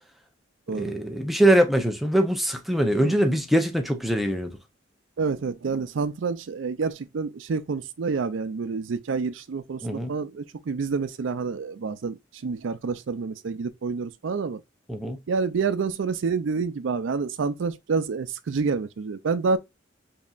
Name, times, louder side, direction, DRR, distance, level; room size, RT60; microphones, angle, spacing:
voice 1, 0.7-4.5 9.8-10.1 14.9-15.2, right 1 dB, ahead, 0.6 m, -22 dB
voice 2, 5.2-14.6 15.3-19.6, right 4 dB, 90° right, 0.4 m, -28 dB
5.1 x 2.8 x 2.4 m
head